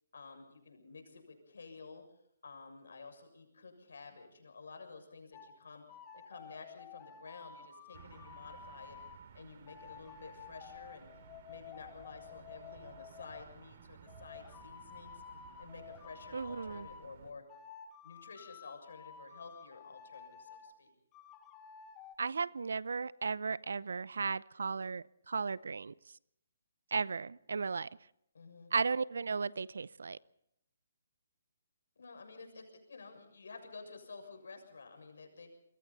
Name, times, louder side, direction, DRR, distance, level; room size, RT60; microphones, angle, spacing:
voice 1, 0.1-2.0 2.4-5.8 6.1-9.0 9.3-11.1 11.4-15.2 15.6-17.4 18.0-20.9 28.3-28.7 31.9-35.5, left 4 dB, 70° left, 7.0 m, -51 dB
sound 1, 5.3-5.5 5.9-9.2 9.7-13.4 14.1-17.1 17.5-20.7 21.1-22.1, left 8 dB, 20° left, 2.5 m, -52 dB
sound 2, 7.9-17.3, right 7 dB, 50° right, 2.7 m, -57 dB
voice 2, 16.3-16.9 22.2-25.9 26.9-27.9 28.7-30.2, right 5 dB, 75° right, 0.7 m, -35 dB
26.5 x 23.0 x 4.2 m
hypercardioid pair, 145°, 0 cm